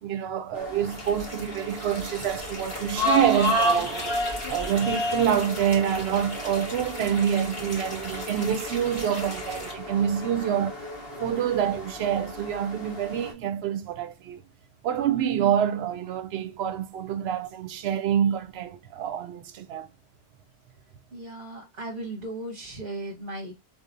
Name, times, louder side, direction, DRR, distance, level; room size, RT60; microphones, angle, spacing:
voice 1, 0.0-4.1 4.5-10.8 11.2-14.4 14.8-19.9, right 9 dB, 85° right, 0.8 m, -26 dB
sound 1, 0.5-13.3, left 1 dB, 70° left, 1.6 m, -32 dB
sound 2, 0.8-9.7, left 1 dB, 30° left, 2.2 m, -39 dB
voice 2, 21.1-23.5, right 2 dB, 70° right, 1.2 m, -36 dB
4.0 x 2.8 x 2.5 m
omnidirectional pair, 1.0 m